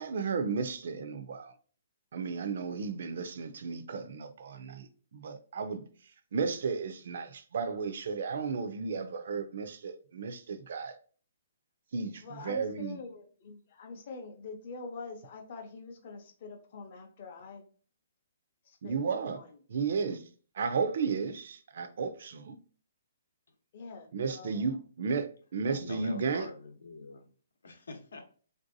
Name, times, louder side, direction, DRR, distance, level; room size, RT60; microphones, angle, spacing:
voice 1, 0.0-1.5 2.1-5.8 6.3-11.0 11.9-13.0 18.8-19.4 19.7-20.2 20.6-22.6 24.1-25.3 25.5-26.5, right 5 dB, 45° right, 0.4 m, -33 dB
voice 2, 12.2-17.7 18.6-19.0 19.3-19.6 23.7-24.6, left 4 dB, 30° left, 0.6 m, -45 dB
voice 3, 24.5-24.8 25.7-27.3 27.6-28.2, left 2 dB, 75° left, 0.8 m, -45 dB
3.3 x 2.6 x 2.5 m
hypercardioid pair, 180°, 0 cm